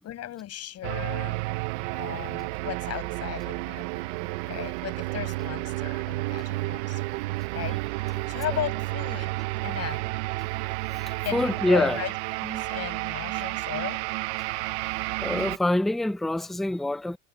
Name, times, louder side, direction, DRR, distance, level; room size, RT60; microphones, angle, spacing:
voice 1, 0.0-1.6 1.9-4.1 4.5-7.2 7.5-9.3 9.6-10.1 11.2-14.1, left 12 dB, 45° left, 7.1 m, -36 dB
sound 1, 0.8-15.6, right 22 dB, 80° right, 0.8 m, -31 dB
voice 2, 10.9-12.0 15.2-17.2, left 1 dB, ahead, 0.6 m, -25 dB
supercardioid pair, 110°, 34 cm